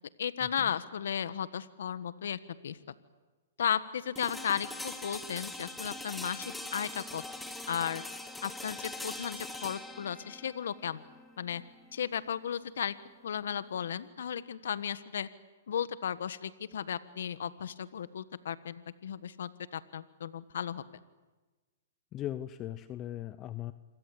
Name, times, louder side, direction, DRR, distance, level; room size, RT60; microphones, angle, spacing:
voice 1, 0.2-2.8 3.6-7.2 7.7-8.0 8.4-11.0 11.4-11.6 11.9-12.9 13.2-15.3 15.7-20.8, left 8 dB, 75° left, 15 dB, 1.3 m, -35 dB
sound 1, 4.2-14.1, left 2 dB, 5° left, 2.6 m, -43 dB
voice 2, 22.1-23.7, left 12 dB, 25° left, 13 dB, 1.0 m, -38 dB
27.5 x 25.5 x 8.4 m, 1.2 s
hypercardioid pair, 140°, 0 cm